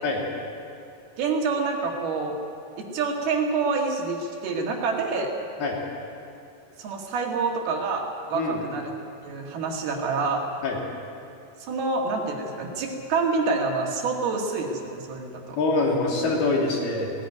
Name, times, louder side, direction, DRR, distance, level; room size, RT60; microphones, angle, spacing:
voice 1, 1.2-2.4 2.8-5.3 6.8-8.0 8.3-8.9 9.2-10.4 11.6-15.6, right 4 dB, 70° right, 0 dB, 3.9 m, -27 dB
voice 2, 15.6-17.1, left 3 dB, 70° left, -2 dB, 4.9 m, -24 dB
17.5 x 16.5 x 9.4 m, 2.6 s
omnidirectional pair, 4.7 m